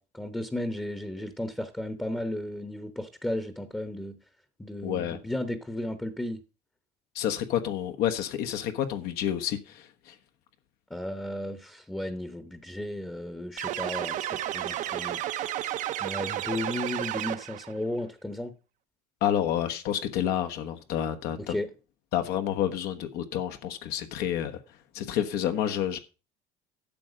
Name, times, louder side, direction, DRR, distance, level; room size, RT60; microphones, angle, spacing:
voice 1, 0.0-4.2 4.6-6.4 10.9-15.7 16.0-18.5 21.5-21.7, left 1 dB, 5° left, 0.8 m, -34 dB
voice 2, 4.8-5.2 7.1-10.2 19.2-21.5 22.1-24.6 24.9-26.0, left 10 dB, 75° left, 1.2 m, -29 dB
sound 1, 13.6-17.7, right 12 dB, 50° right, 0.6 m, -32 dB
12.0 x 7.6 x 5.1 m
cardioid pair, 155°, 17 cm